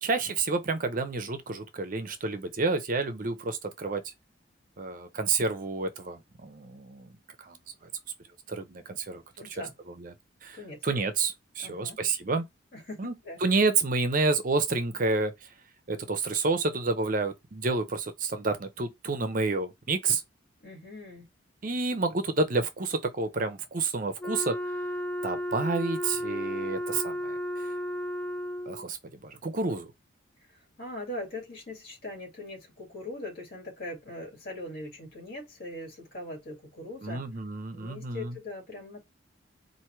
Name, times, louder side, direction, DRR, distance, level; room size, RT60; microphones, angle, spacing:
voice 1, 0.0-4.0 4.8-7.1 7.4-7.6 8.5-9.2 9.5-10.1 10.4-12.5 13.0-13.1 13.4-15.3 15.9-20.2 21.6-24.6 25.2-27.7 28.7-29.9 37.0-38.4, right 3 dB, 40° right, 0.6 m, -29 dB
voice 2, 9.4-9.7 10.5-10.8 11.6-12.0 12.7-13.4 20.6-21.3 30.8-37.2 37.7-39.0, left 1 dB, 50° left, 2.4 m, -41 dB
Wind instrument woodwind instrument, 24.2-28.9, equal, 5° left, 0.4 m, -33 dB
4.5 x 2.6 x 4.5 m
head